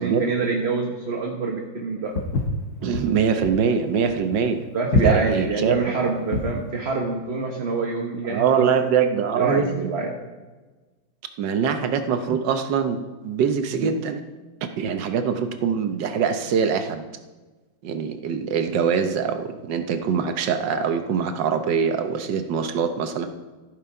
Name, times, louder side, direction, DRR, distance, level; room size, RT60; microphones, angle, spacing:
voice 1, 0.0-2.1 4.7-8.5 9.4-10.2, right 4 dB, 40° right, 1 dB, 1.1 m, -26 dB
Walk footsteps, 2.1-6.6, left 2 dB, 60° left, 1.5 m, -25 dB
voice 2, 2.8-4.6 5.0-6.1 8.2-10.0 11.4-14.2 14.8-17.0 17.8-23.3, right 6 dB, 70° right, 8 dB, 1.5 m, -23 dB
14.5 x 6.9 x 4.7 m, 1.3 s
omnidirectional pair, 2.1 m